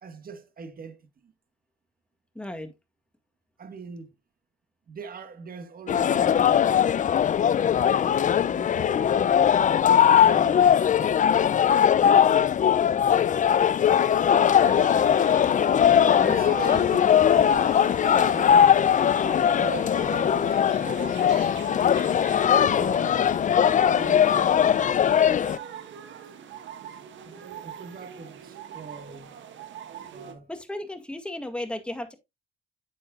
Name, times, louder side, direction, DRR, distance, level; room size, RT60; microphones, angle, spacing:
voice 1, 0.0-1.3 3.6-4.1 4.9-7.4 8.2-11.5 12.0-12.7 13.8-14.5 15.7-18.9 19.5-21.0 22.5-23.4 23.8-25.2 27.2-29.4 30.1-30.5, right 5 dB, 45° right, 1.6 m, -42 dB
voice 2, 2.4-2.7 30.5-32.1, left 1 dB, 5° left, 1.9 m, -34 dB
sound 1, 5.9-25.6, left 9 dB, 40° left, 0.5 m, -20 dB
sound 2, 14.4-30.3, right 9 dB, 70° right, 1.5 m, -42 dB
9.4 x 7.5 x 2.4 m
cardioid pair, 90°, 20 cm